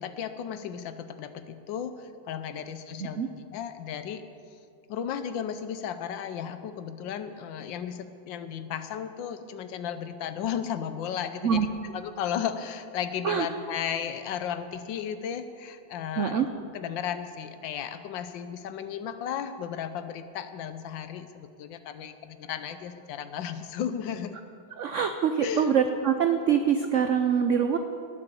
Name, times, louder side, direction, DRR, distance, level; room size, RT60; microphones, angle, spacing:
voice 1, 0.0-4.2 4.9-16.4 16.7-24.4 25.4-25.7, left 8 dB, 75° left, 11 dB, 1.4 m, -34 dB
voice 2, 16.2-16.5 24.8-27.8, right 7 dB, 90° right, 7 dB, 0.6 m, -24 dB
19.0 x 6.9 x 7.0 m, 2.5 s
omnidirectional pair, 2.1 m